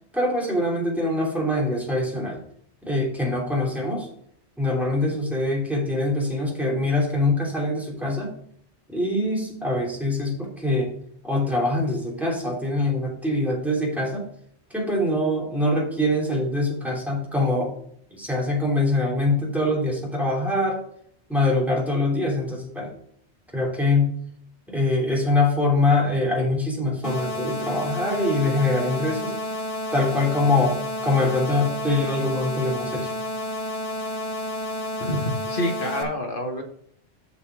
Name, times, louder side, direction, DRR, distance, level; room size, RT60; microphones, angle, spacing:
voice 1, 0.1-2.4 2.8-4.1 4.6-8.4 8.9-10.9 11.2-14.2 14.7-17.7 18.1-20.8 21.3-22.9 23.5-24.1 24.7-29.4 29.9-33.1, left 2 dB, ahead, -3 dB, 3.0 m, -24 dB
sound 1, 27.0-36.0, left 1 dB, 30° left, 1.4 m, -30 dB
voice 2, 35.0-36.6, equal, 50° left, 3 dB, 1.7 m, -27 dB
7.2 x 6.8 x 4.8 m, 0.66 s
omnidirectional pair, 1.2 m